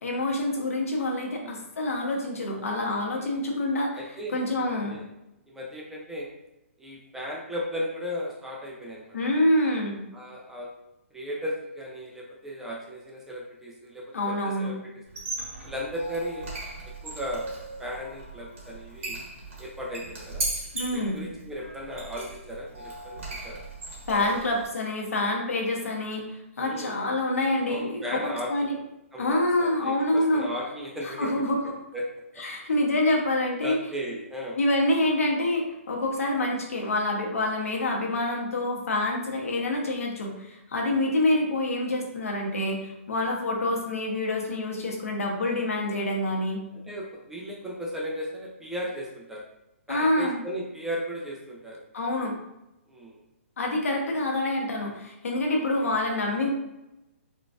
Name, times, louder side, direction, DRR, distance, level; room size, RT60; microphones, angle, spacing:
voice 1, 0.0-4.0 4.3-5.0 9.1-10.0 14.1-14.7 20.7-21.2 24.1-26.2 26.6-28.8 29.2-30.5 31.0-31.8 32.4-33.8 34.6-46.6 49.9-50.4 51.9-52.4 53.6-56.5, left 1 dB, 85° left, 0 dB, 0.8 m, -26 dB
voice 2, 4.0-5.0 5.5-6.3 6.8-9.2 10.1-10.7 11.1-14.0 14.4-14.8 15.6-16.5 16.8-17.5 17.8-19.2 19.6-20.5 20.9-23.6 26.6-27.0 27.7-28.7 29.1-31.4 31.9-32.1 33.6-34.6 40.8-41.2 45.8-46.0 46.9-49.5 49.9-51.8 52.9-53.2 55.5-55.6, equal, 5° right, -3 dB, 0.3 m, -36 dB
Squeak, 15.0-24.7, right 2 dB, 65° right, 1.3 m, -37 dB
3.7 x 2.3 x 2.4 m, 0.92 s
hypercardioid pair, 160°, 7 cm